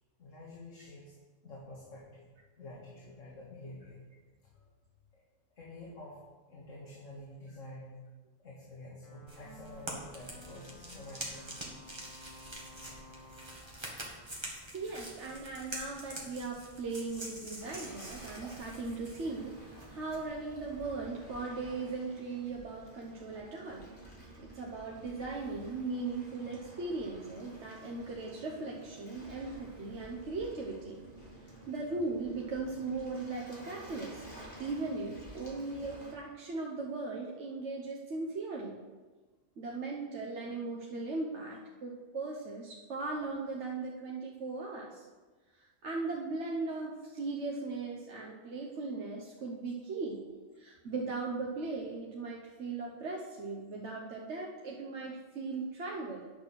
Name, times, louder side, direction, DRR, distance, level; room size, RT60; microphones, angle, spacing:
voice 1, 0.2-1.1 1.4-2.2 2.6-4.0 4.5-4.7 5.1-5.2 5.6-6.2 6.5-8.0 8.4-11.5 13.6-13.8 31.5-31.7, left 1 dB, 75° left, -5 dB, 2.1 m, -49 dB
sound 1, 9.0-15.1, left 1 dB, 25° left, 2.8 m, -55 dB
sound 2, 9.3-20.3, right 1 dB, 20° right, 1.7 m, -46 dB
voice 2, 14.7-23.9 24.4-31.0 31.7-34.2 34.6-38.8 39.6-45.0 45.6-50.2 50.6-56.3, right 3 dB, 65° right, -2 dB, 1.3 m, -38 dB
Waves surf, 17.6-36.1, right 1 dB, 40° left, 2.5 m, -51 dB
9.5 x 6.1 x 6.2 m, 1.3 s
omnidirectional pair, 1.3 m